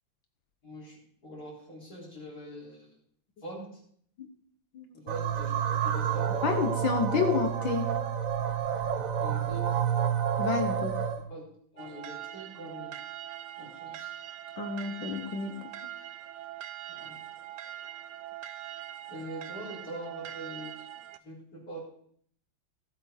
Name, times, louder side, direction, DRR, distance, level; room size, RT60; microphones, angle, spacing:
voice 1, 0.6-2.9 3.4-3.7 4.9-6.5 9.2-9.6 11.3-11.4 11.7-12.9 13.6-14.1 16.9-17.2 19.1-20.8 21.2-21.8, right 1 dB, 45° left, -8 dB, 4.5 m, -43 dB
sound 1, 5.1-11.2, right 8 dB, 50° right, 1.2 m, -29 dB
voice 2, 6.4-7.9 10.4-11.0 14.6-15.6, left 5 dB, 75° left, 5 dB, 2.0 m, -29 dB
sound 2, 11.8-21.2, right 12 dB, 70° right, 1.2 m, -42 dB
18.0 x 8.4 x 4.4 m, 0.63 s
omnidirectional pair, 2.1 m